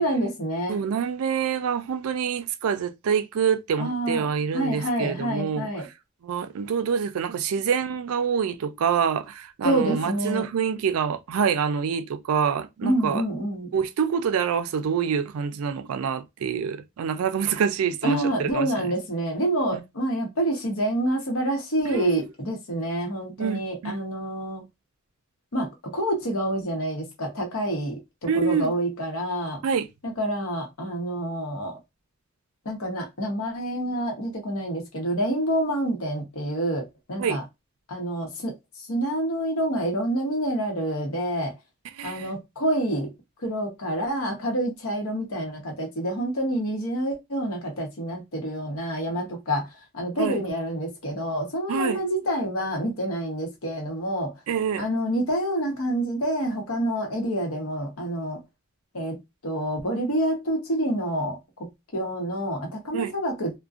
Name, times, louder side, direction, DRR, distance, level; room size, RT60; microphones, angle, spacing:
voice 1, 0.0-0.8 3.8-4.3 4.5-5.9 9.6-10.5 12.8-13.7 18.0-24.6 25.5-29.6 30.0-31.8 32.6-37.4 37.9-41.5 42.0-43.1 43.4-49.7 49.9-54.3 54.8-58.4 58.9-59.2 59.4-63.5, right 1 dB, 80° left, 0.8 m, -27 dB
voice 2, 0.7-5.7 6.2-13.2 13.7-18.9 19.7-19.8 21.8-22.3 23.4-23.9 28.3-28.7 29.6-29.9 37.2-37.4 42.0-42.3 50.2-50.4 51.7-52.0 54.5-54.9 62.9-63.1, right 7 dB, 85° right, 0.4 m, -26 dB
2.5 x 2.1 x 2.3 m
head